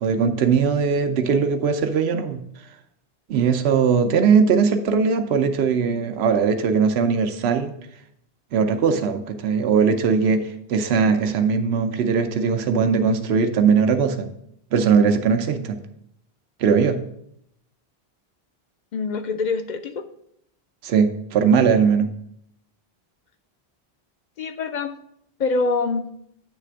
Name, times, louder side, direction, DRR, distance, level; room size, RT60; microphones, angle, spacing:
voice 1, 0.0-2.4 3.3-7.7 8.5-14.3 14.7-15.8 16.6-17.0 20.8-22.1, right 6 dB, 85° right, 7 dB, 0.9 m, -20 dB
voice 2, 18.9-20.1 24.4-25.0 25.4-26.1, left 4 dB, 55° left, 9 dB, 0.6 m, -25 dB
8.8 x 3.3 x 6.1 m, 0.73 s
omnidirectional pair, 1.0 m